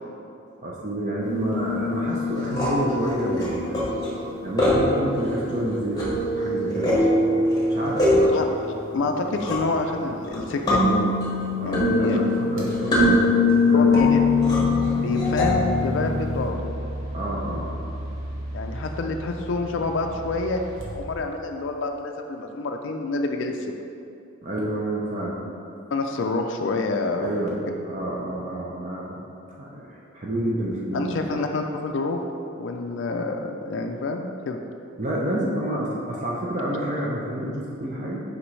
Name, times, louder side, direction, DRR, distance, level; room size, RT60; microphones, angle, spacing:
voice 1, 0.6-3.8 4.4-7.4 7.7-8.3 11.6-14.0 17.1-17.7 24.4-25.4 27.2-27.6 27.8-29.2 29.6-31.4 35.0-38.2, right 1 dB, 35° right, -4 dB, 0.5 m, -29 dB
sound 1, 1.2-16.5, left 2 dB, 20° left, 1.1 m, -23 dB
voice 2, 8.9-11.2 11.6-12.2 13.7-14.2 15.0-16.7 18.5-20.6 20.9-23.6 25.9-27.3 30.9-32.2 32.6-34.6, left 3 dB, 60° left, 3 dB, 0.3 m, -27 dB
sound 2, 12.6-12.8 13.7-21.7, right 1 dB, 75° right, 1.1 m, -35 dB
6.0 x 5.1 x 3.2 m, 2.7 s
head